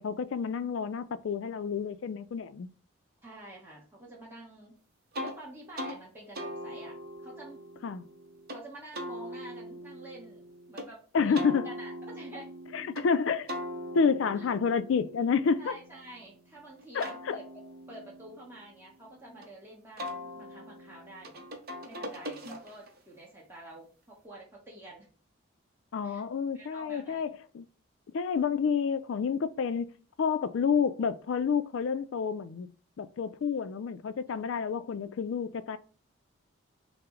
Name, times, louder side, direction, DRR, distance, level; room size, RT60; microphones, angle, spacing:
voice 1, 0.0-2.7 7.8-8.0 11.1-11.7 12.7-13.5 13.9-15.7 16.9-17.4 25.9-27.7 28.1-29.9 30.2-32.7 33.0-35.8, left 6 dB, 60° left, 0.3 m, -29 dB
voice 2, 3.2-4.8 5.2-7.0 7.2-7.8 8.5-10.4 10.7-11.4 11.6-12.5 14.4-14.5 15.6-17.4 17.9-21.5 21.8-25.1 26.0-26.2 26.5-27.3, right 1 dB, 10° right, 1.0 m, -48 dB
sound 1, 5.1-5.4 5.8-6.0 6.4-8.6 8.9-10.9 11.4-13.1 13.5-16.4 16.8-19.5 20.0-23.0, equal, 45° right, 0.7 m, -41 dB
5.7 x 2.0 x 3.7 m
head